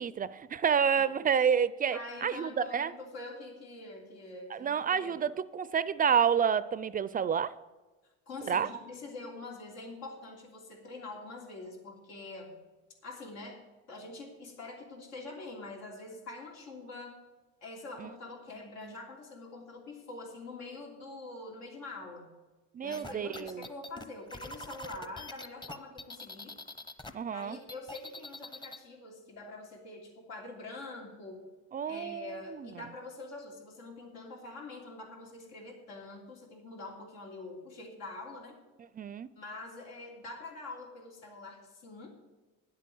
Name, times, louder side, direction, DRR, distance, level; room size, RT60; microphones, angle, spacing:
voice 1, 0.0-2.9 4.5-7.5 8.5-8.7 18.0-18.1 18.8-18.9 22.7-23.7 27.1-27.6 31.7-32.7 39.0-39.3, right 7 dB, 30° right, 17 dB, 0.4 m, -29 dB
voice 2, 1.9-5.3 8.3-12.5 13.0-13.6 13.9-17.1 17.6-22.3 22.8-26.5 27.3-31.5 31.8-38.6 39.3-42.1, left 2 dB, 90° left, 0 dB, 3.2 m, -45 dB
sound 1, 22.9-27.1 27.4-28.8, left 1 dB, 15° left, 0.8 m, -44 dB
9.8 x 8.3 x 7.7 m, 1.2 s
cardioid pair, 110°, 31 cm